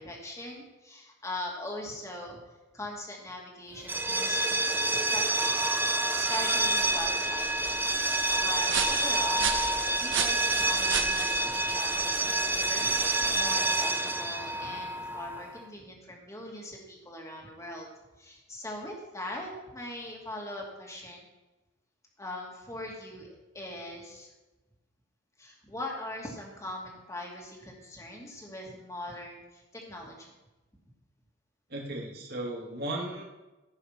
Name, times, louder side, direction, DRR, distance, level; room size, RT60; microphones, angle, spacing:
voice 1, 0.0-2.4 2.7-5.6 6.1-7.9 8.4-9.5 10.0-17.9 18.2-21.3 22.2-24.3 25.4-30.3, left 1 dB, 15° left, -1 dB, 2.4 m, -41 dB
sound 1, 3.8-15.5, right 2 dB, 10° right, 0.8 m, -28 dB
sound 2, 6.4-13.7, right 7 dB, 80° right, 1.1 m, -36 dB
voice 2, 31.7-33.2, right 1 dB, 55° right, -1 dB, 2.3 m, -35 dB
15.5 x 6.3 x 5.9 m, 1.1 s
head